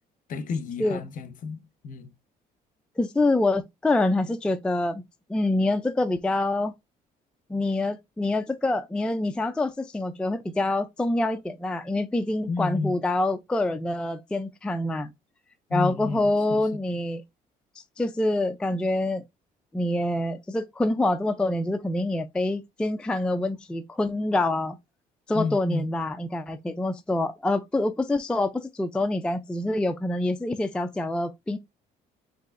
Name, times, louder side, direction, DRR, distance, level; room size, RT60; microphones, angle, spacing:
voice 1, 0.3-2.1 12.5-13.0 15.7-16.6 25.3-25.9, left 4 dB, 50° left, 0.8 m, -31 dB
voice 2, 3.0-5.0 5.3-6.7 7.5-15.1 15.7-17.2 18.0-19.2 19.7-24.8 25.3-31.6, left 2 dB, 5° left, 0.3 m, -26 dB
4.7 x 2.9 x 2.4 m
cardioid pair, 110°, 17 cm